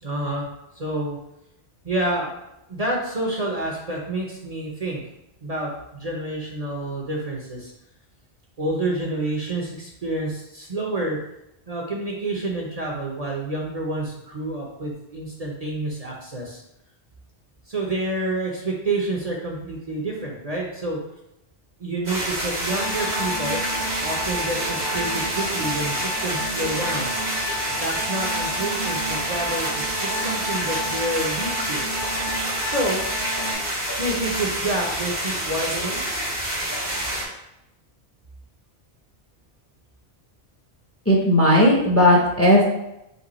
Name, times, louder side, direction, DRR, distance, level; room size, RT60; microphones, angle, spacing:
voice 1, 0.0-0.5 0.8-1.2 1.8-2.3 2.7-5.0 5.4-7.7 8.6-11.2 11.7-16.6 17.7-21.0 21.8-23.6 24.0-27.1 27.7-31.8 32.6-33.0 34.0-36.0, right 2 dB, 40° right, -2 dB, 0.8 m, -28 dB
sound 1, 22.0-37.2, right 1 dB, 85° right, 1.9 m, -28 dB
sound 2, 22.7-33.5, equal, 60° right, 1.0 m, -32 dB
voice 2, 41.1-42.6, left 1 dB, 15° left, -3 dB, 0.7 m, -16 dB
5.3 x 2.3 x 4.1 m, 0.86 s
omnidirectional pair, 1.1 m